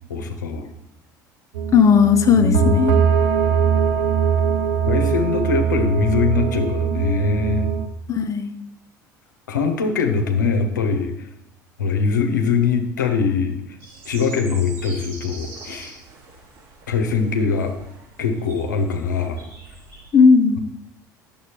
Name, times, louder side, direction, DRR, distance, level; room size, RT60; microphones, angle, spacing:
voice 1, 0.1-0.6 2.4-2.8 4.9-7.7 9.5-11.3 11.8-13.6 14.0-16.0 16.9-17.8 18.2-19.4, left 5 dB, 85° left, 4 dB, 0.7 m, -22 dB
sound 1, 1.5-7.9, right 7 dB, 75° right, 0.6 m, -21 dB
voice 2, 1.7-3.0 8.1-8.5 20.1-20.6, left 6 dB, 35° left, 7 dB, 0.6 m, -15 dB
sound 2, 13.8-20.1, right 3 dB, 60° right, 3.0 m, -43 dB
9.3 x 6.9 x 2.9 m, 0.78 s
hypercardioid pair, 65°, 10 cm